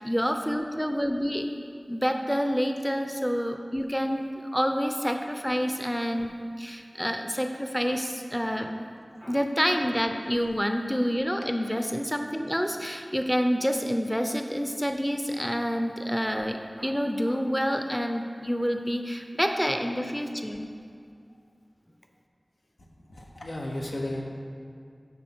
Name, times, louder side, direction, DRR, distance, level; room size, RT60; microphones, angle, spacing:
voice 1, 0.0-1.5 1.9-6.3 6.6-8.8 9.2-20.7, equal, 5° left, 5 dB, 0.6 m, -28 dB
voice 2, 23.1-24.2, left 1 dB, 80° left, -1 dB, 1.2 m, -35 dB
9.9 x 4.3 x 6.1 m, 2.3 s
wide cardioid pair, 55°, 0 cm